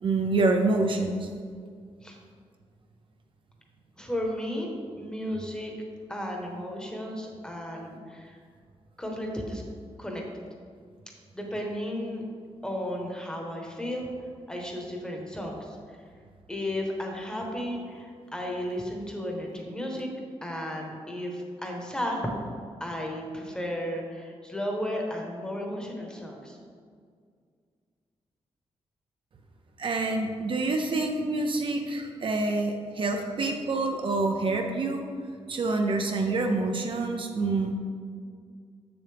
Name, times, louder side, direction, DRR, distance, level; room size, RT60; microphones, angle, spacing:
voice 1, 0.0-1.3 29.8-35.0 35.5-37.7, right 3 dB, 50° right, 4 dB, 0.5 m, -27 dB
voice 2, 4.0-4.7 5.0-5.7 6.1-8.4 9.0-9.6 10.0-10.2 11.3-12.2 12.6-16.0 16.5-20.1 20.4-22.3 22.8-26.6, equal, 5° left, 0 dB, 1.1 m, -34 dB
7.7 x 6.8 x 3.4 m, 2.1 s
wide cardioid pair, 160°, 11 cm